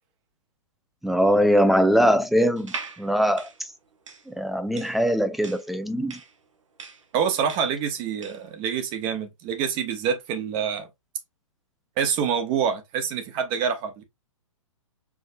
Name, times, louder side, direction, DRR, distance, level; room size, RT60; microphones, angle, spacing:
voice 1, 1.0-3.7 4.3-6.2, equal, ahead, 0.4 m, -22 dB
sound 1, 2.6-8.5, right 4 dB, 70° right, 1.2 m, -41 dB
voice 2, 7.1-10.9 12.0-14.0, right 7 dB, 30° right, 1.0 m, -26 dB
4.7 x 3.2 x 2.7 m
figure-of-eight pair, 120°, 17 cm